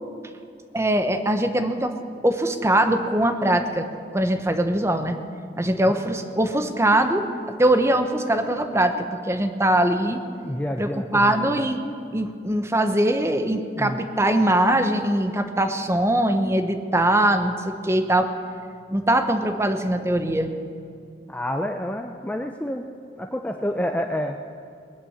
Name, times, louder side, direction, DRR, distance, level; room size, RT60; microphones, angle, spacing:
voice 1, 0.7-1.9 2.2-3.9 4.1-5.2 5.6-7.2 7.6-10.2 10.8-18.3 18.9-20.5, right 1 dB, 15° right, 7 dB, 0.9 m, -22 dB
voice 2, 10.4-11.5 13.8-14.0 21.3-22.8 23.2-24.4, equal, 10° left, 5 dB, 0.5 m, -28 dB
20.0 x 8.5 x 7.3 m, 2.3 s
head